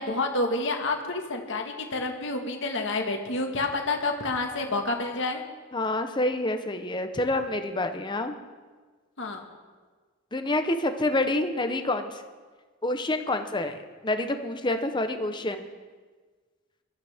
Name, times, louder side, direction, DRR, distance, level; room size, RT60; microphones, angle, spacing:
voice 1, 0.0-5.4 9.2-9.4, left 2 dB, 65° left, 3 dB, 1.7 m, -29 dB
voice 2, 5.7-8.3 10.3-12.1 12.8-13.7 14.0-15.7, left 2 dB, 20° left, 7 dB, 0.9 m, -27 dB
21.5 x 13.0 x 3.6 m, 1.4 s
head